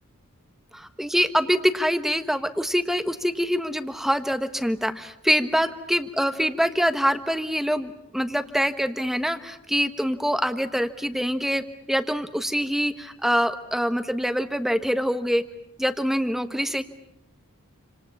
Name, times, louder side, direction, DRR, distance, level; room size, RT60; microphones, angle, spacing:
voice 1, 0.7-15.4 15.8-16.8, equal, ahead, 10 dB, 1.2 m, -25 dB
28.5 x 26.5 x 7.2 m, 0.80 s
head